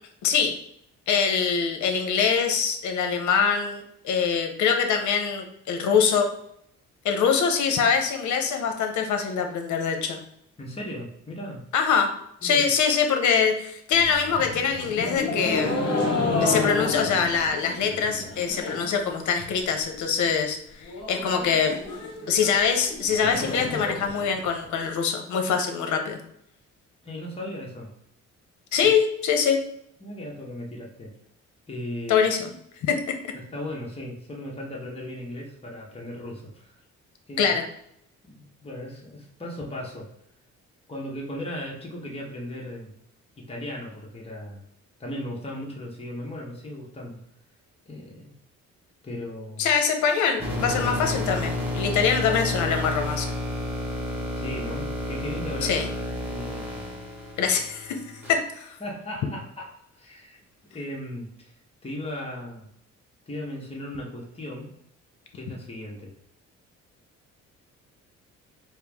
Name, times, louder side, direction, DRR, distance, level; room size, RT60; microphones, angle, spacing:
voice 1, 0.2-0.5 1.1-6.3 7.0-10.2 11.7-12.1 12.4-15.9 16.4-20.6 21.1-21.8 22.3-26.2 28.7-29.6 32.1-32.5 32.8-33.1 37.4-37.6 49.6-53.3 55.6-55.9 57.4-58.0 58.3-58.7, left 6 dB, 75° left, 4 dB, 0.7 m, -24 dB
voice 2, 10.6-11.6 12.4-12.7 27.0-27.9 30.0-31.1 31.7-32.2 33.3-36.8 37.3-37.5 38.2-40.1 40.9-42.9 43.4-44.6 45.0-47.2 47.9-48.3 49.0-49.7 54.3-55.7 56.3-57.0 58.8-60.4 60.7-61.5 61.8-62.7 63.3-64.7 65.3-66.1, left 1 dB, 20° left, -2 dB, 1.0 m, -37 dB
sound 1, 13.9-19.0 19.2-19.8 20.1-20.2 20.4-20.5 20.8-24.8, left 2 dB, 55° left, 1.0 m, -30 dB
sound 2, 50.4-58.3, left 1 dB, 5° right, 1.2 m, -31 dB
4.4 x 2.0 x 3.5 m, 0.72 s
cardioid pair, 90°, 30 cm